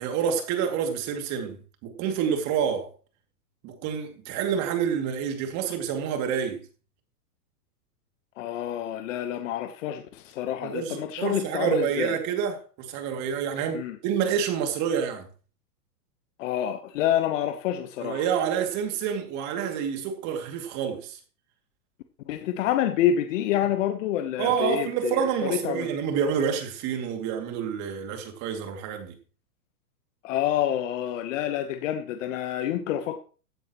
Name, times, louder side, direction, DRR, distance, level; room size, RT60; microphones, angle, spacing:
voice 1, 0.0-1.6 1.8-2.9 3.6-6.6 10.6-15.3 18.0-21.2 24.4-29.2, right 7 dB, 35° right, 2.5 m, -28 dB
voice 2, 8.4-12.2 13.7-14.0 16.4-18.3 22.3-25.9 30.2-33.2, left 11 dB, 50° left, 1.1 m, -28 dB
15.5 x 9.9 x 3.0 m
hypercardioid pair, 135°, 48 cm